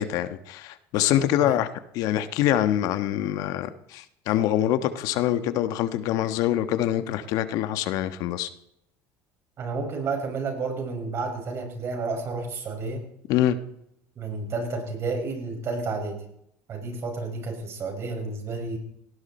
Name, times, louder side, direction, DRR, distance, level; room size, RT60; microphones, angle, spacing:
voice 1, 0.0-1.7 1.9-8.5 13.3-13.6, left 12 dB, 70° left, 11 dB, 1.4 m, -25 dB
voice 2, 9.6-13.0 14.2-16.2 16.7-18.8, right 3 dB, 40° right, 2 dB, 6.3 m, -31 dB
18.5 x 17.5 x 4.4 m, 0.74 s
cardioid pair, 120°, 6 cm